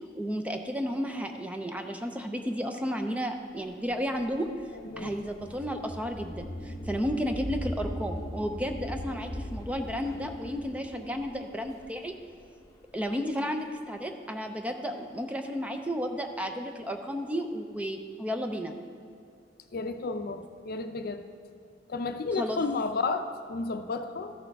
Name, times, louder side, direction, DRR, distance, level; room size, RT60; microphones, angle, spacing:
voice 1, 0.2-4.5 5.0-12.1 12.9-18.7 22.4-22.6, equal, 10° right, 5 dB, 0.5 m, -33 dB
sound 1, 3.8-12.7, equal, 20° left, 0.8 m, -39 dB
voice 2, 19.7-21.2 21.9-24.3, left 3 dB, 55° left, 8 dB, 0.5 m, -32 dB
13.5 x 6.1 x 3.5 m, 2.4 s
head